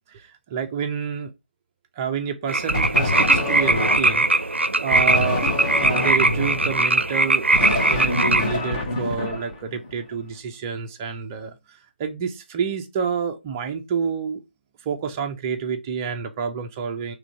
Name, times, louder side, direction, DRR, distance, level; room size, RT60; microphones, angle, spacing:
voice 1, 0.1-1.3 2.0-14.4 14.8-17.1, right 6 dB, 15° right, 0.5 m, -29 dB
sound 1, 2.5-8.5, right 2 dB, 75° right, 0.5 m, -20 dB
sound 2, 2.7-4.3 4.9-10.0, left 2 dB, 25° left, 0.9 m, -26 dB
3.7 x 3.1 x 4.5 m
figure-of-eight pair, 150°, 6 cm